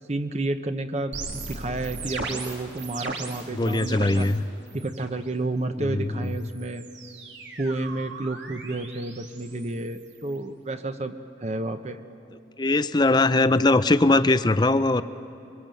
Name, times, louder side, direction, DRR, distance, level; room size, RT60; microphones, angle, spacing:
voice 1, 0.1-4.3 4.7-6.8 7.6-11.1 11.4-12.0, right 2 dB, 35° right, 8 dB, 0.8 m, -30 dB
sound 1, 1.1-4.4 4.7-5.2 6.2-10.4, right 3 dB, 80° right, 2.5 m, -38 dB
voice 2, 3.5-4.4 5.8-6.3 12.6-15.0, left 2 dB, 25° left, 13 dB, 0.5 m, -21 dB
23.5 x 23.5 x 7.7 m, 2.6 s
head